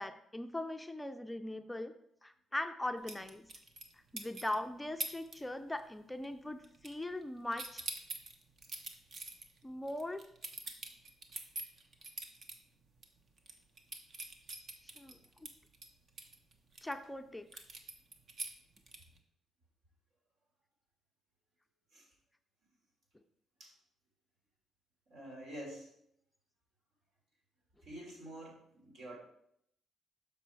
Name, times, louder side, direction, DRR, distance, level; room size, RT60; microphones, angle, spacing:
voice 1, 0.0-1.9 2.2-3.5 4.1-7.8 9.6-10.2 14.8-15.5 16.8-17.5, left 1 dB, 10° left, 7 dB, 0.4 m, -40 dB
sound 1, 3.1-4.5 5.0-5.3 5.6-6.0 6.2-7.2 7.5-12.5 13.0-13.1 13.4-16.9 17.5-19.2, right 3 dB, 50° right, 1.0 m, -44 dB
voice 2, 25.1-25.9 27.8-29.2, right 1 dB, 65° right, -2 dB, 3.4 m, -47 dB
7.1 x 5.4 x 4.6 m, 0.73 s
cardioid pair, 90°, 0 cm